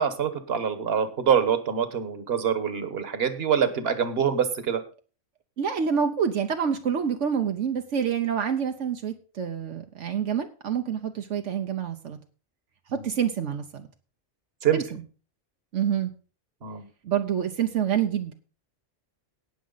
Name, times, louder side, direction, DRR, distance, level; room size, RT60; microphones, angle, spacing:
voice 1, 0.0-4.8 14.6-14.8 16.6-16.8, right 8 dB, 55° right, 10 dB, 1.5 m, -25 dB
voice 2, 5.6-12.2 12.9-13.9 14.7-15.0 15.7-16.1 17.0-18.3, right 8 dB, 80° right, 5 dB, 1.2 m, -27 dB
18.0 x 6.2 x 3.9 m, 0.37 s
omnidirectional pair, 1.2 m